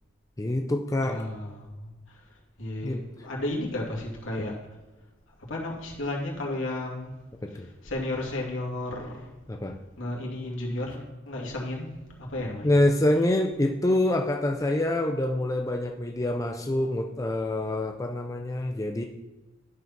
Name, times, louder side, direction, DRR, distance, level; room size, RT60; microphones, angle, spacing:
voice 1, 0.4-1.2 2.8-3.0 7.4-7.7 9.5-9.8 12.6-19.0, left 1 dB, 15° left, 3 dB, 0.5 m, -26 dB
voice 2, 1.0-2.2 2.6-4.5 5.5-7.1 7.5-9.3 10.0-11.9 12.2-12.7, left 1 dB, 75° left, -2 dB, 2.5 m, -33 dB
11.0 x 4.9 x 5.9 m, 1.1 s
head